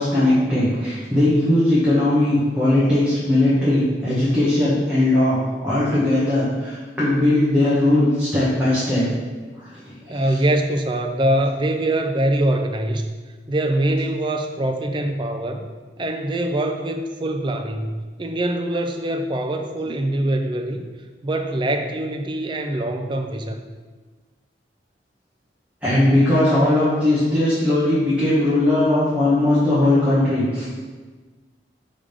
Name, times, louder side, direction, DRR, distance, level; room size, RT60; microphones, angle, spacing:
voice 1, 0.0-9.0 9.6-10.3 25.8-30.7, left 1 dB, 10° right, -10 dB, 1.2 m, -19 dB
voice 2, 10.1-13.1 13.5-15.6 16.0-20.8 21.2-23.6, right 1 dB, 25° right, 5 dB, 0.4 m, -23 dB
4.9 x 3.6 x 5.3 m, 1.4 s
head